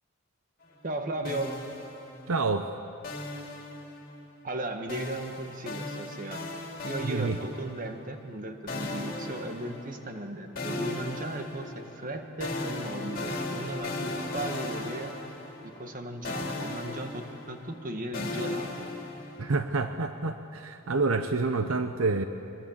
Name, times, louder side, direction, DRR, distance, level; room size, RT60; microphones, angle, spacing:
voice 1, 0.8-1.5 4.4-6.4 6.8-15.1 15.6-18.9, right 1 dB, 40° right, 5 dB, 1.6 m, -36 dB
sound 1, 1.2-2.5 3.0-4.3 4.9-8.0 8.7-10.2 10.6-16.0 16.2-19.5, left 2 dB, 40° left, 3.3 m, -37 dB
voice 2, 2.3-2.7 7.0-7.4 19.4-22.2, right 3 dB, 70° right, 8 dB, 0.8 m, -28 dB
23.5 x 21.5 x 7.4 m, 2.7 s
head